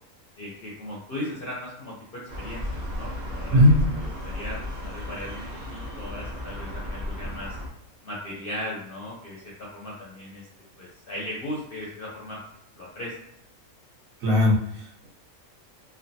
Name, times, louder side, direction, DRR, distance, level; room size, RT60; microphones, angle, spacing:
voice 1, 0.4-4.6 4.8-7.6 8.0-10.5 10.8-12.4 12.8-13.1, left 1 dB, 60° left, -4 dB, 0.6 m, -37 dB
sound 1, 2.3-7.7, left 1 dB, 50° right, 0.5 m, -33 dB
voice 2, 14.2-15.1, left 1 dB, 70° right, -4 dB, 1.3 m, -19 dB
3.2 x 2.2 x 2.6 m, 0.75 s
omnidirectional pair, 1.5 m